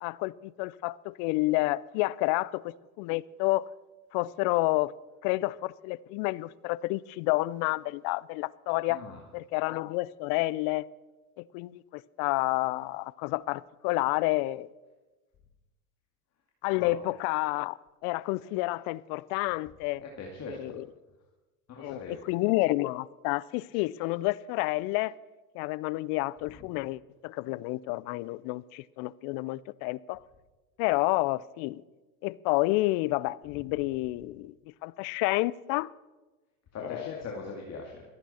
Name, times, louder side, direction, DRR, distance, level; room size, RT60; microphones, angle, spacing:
voice 1, 0.0-3.7 4.1-4.9 5.2-9.0 9.3-10.8 11.4-14.7 16.6-17.8 18.0-20.0 20.5-20.9 21.8-25.1 25.5-30.2 30.8-31.8 32.2-34.5 34.8-35.9 36.8-37.1, left 20 dB, 50° left, 0.6 m, -29 dB
voice 2, 8.9-9.2 16.7-16.9 20.0-20.8 21.7-22.2 36.7-38.0, left 4 dB, 35° left, 2.3 m, -40 dB
25.0 x 9.0 x 4.3 m
hypercardioid pair, 100°, 45 cm